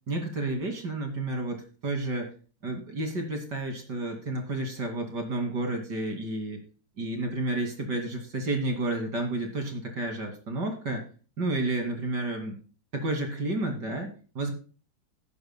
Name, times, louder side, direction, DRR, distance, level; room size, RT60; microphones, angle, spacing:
voice 1, 0.1-2.3 2.6-6.6 7.0-11.0 11.4-12.6 12.9-14.5, right 2 dB, 65° right, 3 dB, 3.0 m, -31 dB
14.5 x 12.5 x 2.2 m, 0.37 s
omnidirectional pair, 2.0 m